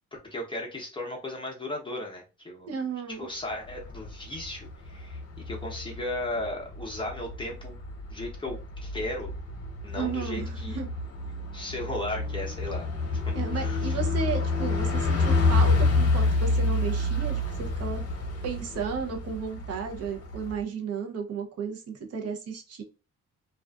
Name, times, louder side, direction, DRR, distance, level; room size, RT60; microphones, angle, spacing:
voice 1, 0.3-2.7 3.2-7.8 8.1-9.3 9.8-10.8 11.5-12.9 13.3-14.0, left 1 dB, 15° left, -1 dB, 0.7 m, -36 dB
voice 2, 2.7-3.3 10.0-10.9 13.3-18.0 18.4-22.8, right 6 dB, 55° right, 3 dB, 0.7 m, -34 dB
Bus, 3.5-20.6, left 3 dB, 50° left, 0.9 m, -29 dB
2.4 x 2.3 x 2.3 m, 0.31 s
cardioid pair, 90°, 30 cm